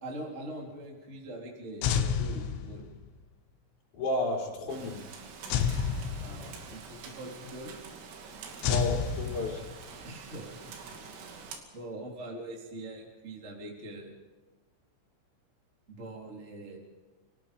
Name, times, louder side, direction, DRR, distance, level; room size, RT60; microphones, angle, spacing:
voice 1, 0.0-2.9 6.2-7.7 10.0-10.7 11.7-14.1 15.9-16.8, right 1 dB, 15° right, -1 dB, 3.3 m, -43 dB
sound 1, 1.8-3.1 5.5-6.8 8.6-9.9, left 7 dB, 80° left, 3.7 m, -30 dB
voice 2, 3.9-5.0 8.6-9.6, left 2 dB, 40° left, -2 dB, 6.0 m, -32 dB
Rain, 4.7-11.6, right 5 dB, 85° right, 5.2 m, -46 dB
29.5 x 18.5 x 5.3 m, 1.3 s
omnidirectional pair, 5.7 m